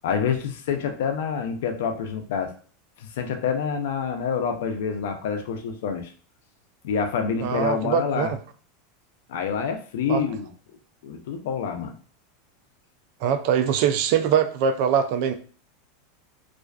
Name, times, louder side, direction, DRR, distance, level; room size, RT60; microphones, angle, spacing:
voice 1, 0.0-2.5 3.0-6.1 6.8-8.3 9.3-10.5 11.0-11.9, left 6 dB, 75° left, 5 dB, 0.4 m, -27 dB
voice 2, 7.4-8.4 10.1-10.2 13.2-15.3, right 8 dB, 55° right, 8 dB, 0.3 m, -22 dB
2.4 x 2.3 x 2.3 m, 0.42 s
supercardioid pair, 140°, 0 cm